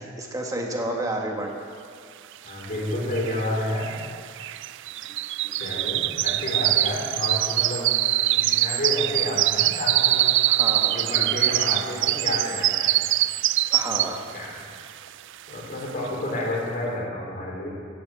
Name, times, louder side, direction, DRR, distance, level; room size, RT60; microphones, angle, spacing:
voice 1, 0.0-1.5 5.4-5.5 10.5-11.1 13.7-14.3, right 1 dB, 15° right, 0 dB, 1.6 m, -30 dB
voice 2, 2.4-3.9 5.6-7.9 8.3-10.5 10.9-13.0 14.3-14.6 15.5-17.7, left 1 dB, 45° left, -3 dB, 4.1 m, -30 dB
sound 1, 2.6-2.7 2.9-14.4 14.8-15.1 15.5-15.6, right 15 dB, 65° right, 0.3 m, -23 dB
16.0 x 9.4 x 7.6 m, 2.3 s
head